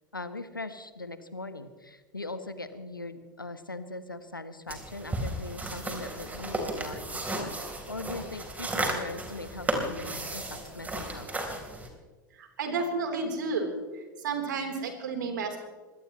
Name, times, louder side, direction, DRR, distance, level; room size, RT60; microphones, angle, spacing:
voice 1, 0.1-11.3, left 2 dB, 90° left, 11 dB, 1.2 m, -40 dB
sound 1, 4.7-11.9, right 2 dB, 15° right, 3.8 m, -34 dB
voice 2, 12.4-13.7 14.2-15.6, right 4 dB, 70° right, 3 dB, 3.7 m, -31 dB
24.0 x 18.5 x 3.1 m, 1.4 s
figure-of-eight pair, 85°, 11 cm